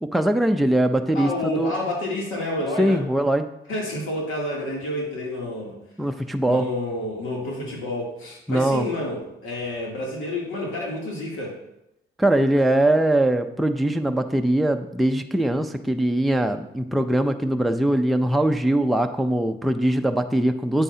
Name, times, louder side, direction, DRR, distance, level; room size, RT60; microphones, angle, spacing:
voice 1, 0.0-1.7 2.8-3.5 6.0-6.7 8.5-8.9 12.2-20.8, right 1 dB, ahead, 5 dB, 0.5 m, -21 dB
voice 2, 1.1-3.0 3.7-5.8 6.4-11.6, left 1 dB, 85° left, -3 dB, 2.8 m, -29 dB
8.8 x 8.5 x 2.8 m, 0.86 s
cardioid pair, 90°, 20 cm